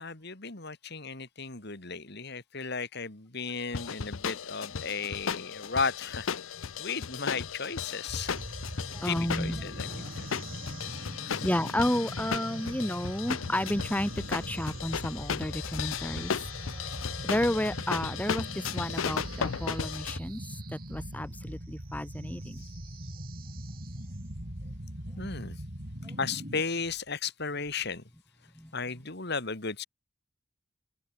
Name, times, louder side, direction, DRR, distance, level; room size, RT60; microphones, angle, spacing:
voice 1, 0.0-6.3 6.8-8.4 9.0-10.3 11.2-11.6 18.8-19.3 22.6-22.7 25.2-25.6 26.2-28.0 28.7-29.9, left 5 dB, 55° left, 3.0 m, -35 dB
sound 1, 3.7-20.2, left 6 dB, 85° left, 0.7 m, -36 dB
sound 2, 8.1-26.6, right 1 dB, 50° right, 3.6 m, -41 dB
voice 2, 8.9-9.6 10.0-10.1 10.4-16.3 16.6-20.4 20.7-22.6 26.0-26.2 28.6-28.7, left 1 dB, 10° left, 2.0 m, -32 dB
head